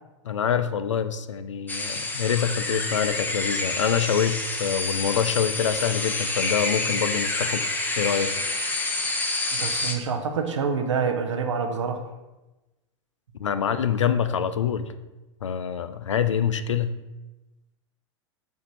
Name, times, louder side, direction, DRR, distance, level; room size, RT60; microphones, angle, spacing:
voice 1, 0.2-7.6 8.0-8.3 13.4-14.9 15.4-16.9, left 8 dB, 90° left, 11 dB, 0.4 m, -25 dB
sound 1, 1.7-9.9, left 2 dB, 10° left, 0.8 m, -28 dB
voice 2, 9.5-12.0, right 5 dB, 85° right, 5 dB, 0.7 m, -27 dB
7.0 x 2.7 x 5.8 m, 1.1 s
hypercardioid pair, 100°, 15 cm